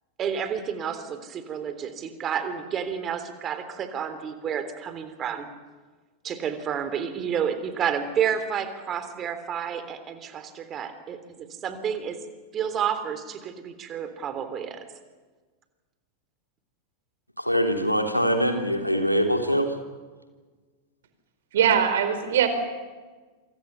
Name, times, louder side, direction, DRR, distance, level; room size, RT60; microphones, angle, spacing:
voice 1, 0.2-5.5 6.2-12.2 12.5-14.8, right 8 dB, 30° right, 10 dB, 3.4 m, -30 dB
voice 2, 17.4-19.8, equal, 90° left, 4 dB, 3.3 m, -23 dB
voice 3, 21.5-22.5, right 9 dB, 60° right, 9 dB, 4.6 m, -21 dB
28.0 x 25.5 x 7.1 m, 1.3 s
figure-of-eight pair, 90°, 0 cm